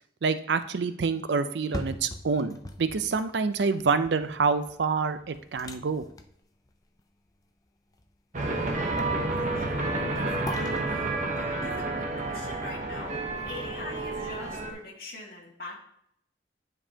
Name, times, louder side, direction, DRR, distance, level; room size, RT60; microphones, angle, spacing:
voice 1, 0.2-6.1, right 5 dB, 85° right, 11 dB, 0.5 m, -27 dB
sound 1, 1.4-13.5 13.9-14.0, left 1 dB, 20° left, 0.4 m, -44 dB
sound 2, 8.3-14.7, right 2 dB, 45° right, 1.0 m, -30 dB
voice 2, 9.5-11.1 11.4-15.8, left 2 dB, 55° left, -3 dB, 1.9 m, -43 dB
9.7 x 5.3 x 2.8 m, 0.70 s
head